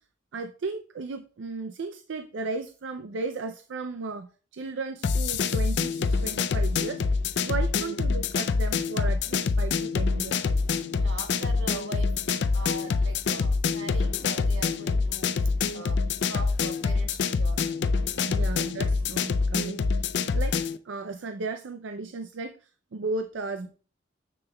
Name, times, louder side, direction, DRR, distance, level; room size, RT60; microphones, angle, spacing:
voice 1, 0.3-7.0 7.4-10.4 18.3-20.1 20.3-23.7, right 3 dB, 70° right, 8 dB, 0.4 m, -35 dB
sound 1, 5.0-20.8, left 4 dB, 60° left, 0.4 m, -26 dB
voice 2, 10.9-12.1 12.5-18.2, right 2 dB, 85° right, 3 dB, 1.4 m, -41 dB
7.3 x 6.6 x 2.2 m, 0.39 s
head